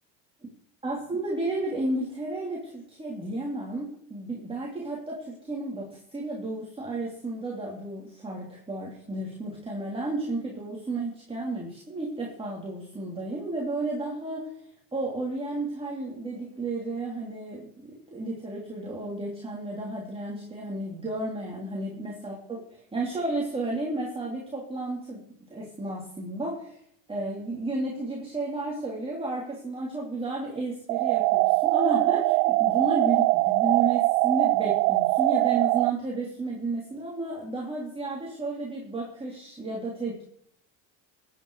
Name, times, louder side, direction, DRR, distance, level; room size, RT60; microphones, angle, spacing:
voice 1, 0.8-14.5 14.9-25.2 25.5-26.8 27.1-40.2, right 2 dB, 10° right, -4 dB, 3.3 m, -32 dB
sound 1, 30.9-35.9, right 22 dB, 85° right, 0.6 m, -22 dB
21.0 x 9.5 x 4.9 m, 0.69 s
cardioid pair, 130°, 44 cm